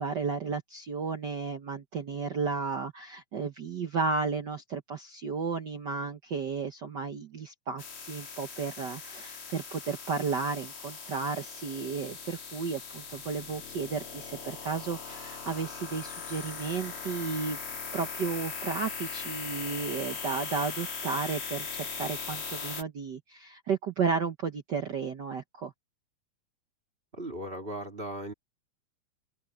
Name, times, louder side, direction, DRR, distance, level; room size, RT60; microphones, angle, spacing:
voice 1, 0.0-17.6 17.9-25.7, right 5 dB, 65° right, 1.0 m, -33 dB
sound 1, 7.8-22.8, left 5 dB, 45° left, 3.8 m, -40 dB
voice 2, 27.1-28.3, right 1 dB, 20° right, 2.9 m, -37 dB
open air
omnidirectional pair, 3.5 m